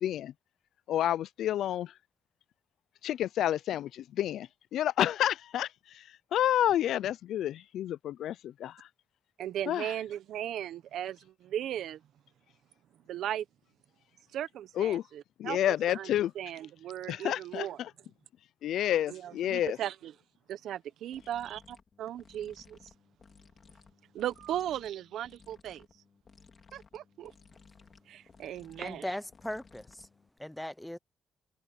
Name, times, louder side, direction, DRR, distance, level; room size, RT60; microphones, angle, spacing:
voice 1, 0.0-0.3 0.9-1.9 3.0-6.0 6.3-8.9 9.7-9.9 14.8-15.0 15.4-16.3 17.1-17.9 18.6-19.8, left 11 dB, 90° left, 0.4 m, -30 dB
voice 2, 9.4-12.0 13.1-13.4 14.3-16.1 16.4-17.8 19.1-20.1 20.5-22.8 24.1-25.9 26.7-27.3 28.1-29.0, right 11 dB, 85° right, 0.9 m, -37 dB
sound 1, 21.1-30.4, left 5 dB, 35° left, 3.7 m, -59 dB
voice 3, 28.8-30.1 30.4-31.0, left 1 dB, 5° left, 0.6 m, -38 dB
wide cardioid pair, 170°, 0 cm